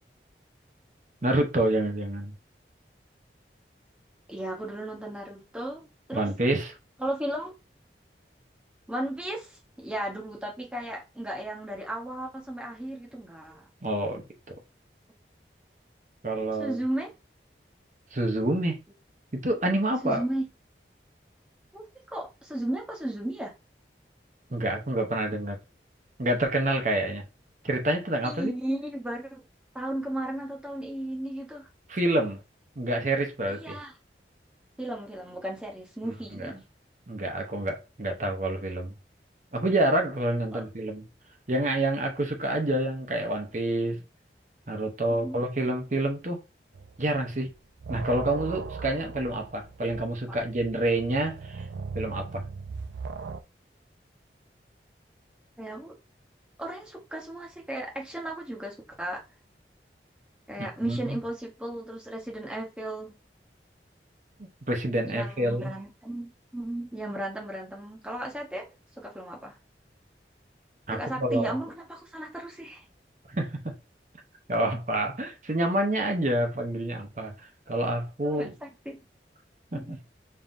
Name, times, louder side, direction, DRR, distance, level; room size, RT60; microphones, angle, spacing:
voice 1, 1.2-2.3 6.1-6.8 13.8-14.2 16.2-16.8 18.1-18.8 19.3-20.2 24.5-25.6 26.2-27.2 27.6-28.5 31.9-32.4 32.8-33.8 36.0-36.5 37.1-38.9 39.5-41.0 41.5-44.0 44.7-46.4 47.0-47.5 47.9-51.6 51.9-52.4 60.6-61.2 64.7-65.7 70.9-71.6 73.3-73.7 74.5-77.3 77.7-78.5 79.7-80.0, right 1 dB, 45° right, 0.8 m, -28 dB
voice 2, 4.3-6.3 7.0-7.6 8.9-13.6 16.6-17.1 20.0-20.4 21.7-21.8 22.1-23.5 28.2-29.4 29.7-31.7 33.5-33.9 34.8-36.7 40.5-40.6 43.9-44.0 45.1-45.4 50.3-50.4 55.6-56.0 56.6-59.2 60.5-63.1 65.1-68.7 69.0-69.6 70.9-72.8 78.2-79.0 79.7-80.0, right 1 dB, 5° right, 0.9 m, -35 dB
sound 1, 46.7-47.2 47.5-53.4, right 4 dB, 85° right, 0.4 m, -39 dB
5.5 x 2.8 x 2.6 m
head